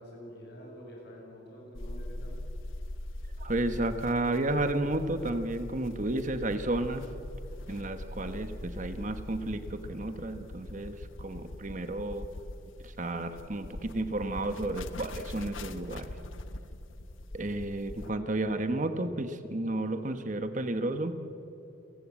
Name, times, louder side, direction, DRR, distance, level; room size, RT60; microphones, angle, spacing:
voice 1, 0.0-2.4, equal, 55° left, -1 dB, 7.5 m, -47 dB
sound 1, 1.7-18.1, left 1 dB, 80° left, 1.1 m, -42 dB
voice 2, 3.4-7.0 7.7-12.3 12.8-16.1 17.3-21.1, right 2 dB, 40° right, 9 dB, 1.2 m, -32 dB
30.0 x 15.5 x 8.7 m, 2.9 s
head